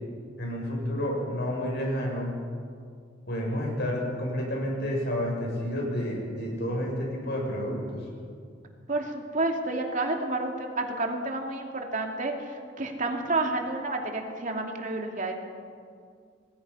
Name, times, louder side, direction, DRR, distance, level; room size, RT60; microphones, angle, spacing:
voice 1, 0.4-2.3 3.3-8.0, equal, 60° left, -1 dB, 7.4 m, -30 dB
voice 2, 8.9-15.3, right 2 dB, 45° right, 2 dB, 2.7 m, -30 dB
26.5 x 20.5 x 5.7 m, 2.2 s
head